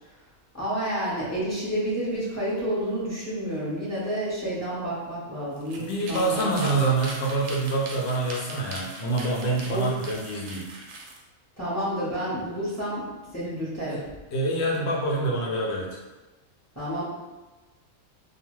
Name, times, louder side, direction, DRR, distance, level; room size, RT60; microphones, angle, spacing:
voice 1, 0.5-6.7 9.7-10.0 11.6-14.0 16.7-17.0, right 1 dB, 15° left, -9 dB, 0.7 m, -30 dB
sound 1, 5.6-11.2, right 3 dB, 80° right, 0.9 m, -41 dB
voice 2, 5.8-10.7 13.9-14.0 14.3-16.0, right 2 dB, 65° left, -3 dB, 0.9 m, -26 dB
2.4 x 2.3 x 3.1 m, 1.1 s
omnidirectional pair, 1.4 m